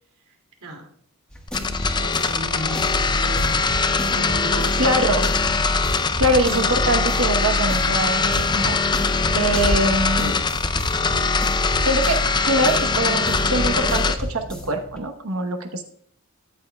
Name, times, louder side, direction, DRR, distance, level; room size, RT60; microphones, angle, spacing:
sound 1, 1.3-15.0, equal, 5° left, 1.4 m, -33 dB
sound 2, 1.5-14.1, left 4 dB, 20° left, 0.5 m, -22 dB
voice 1, 1.9-3.5 4.0-4.8, right 1 dB, 85° right, 2 dB, 2.4 m, -34 dB
voice 2, 4.8-5.3 6.2-8.8 9.3-10.4 11.8-12.2 12.5-15.8, right 1 dB, 65° right, 6 dB, 1.0 m, -23 dB
13.0 x 9.4 x 2.3 m, 0.62 s
head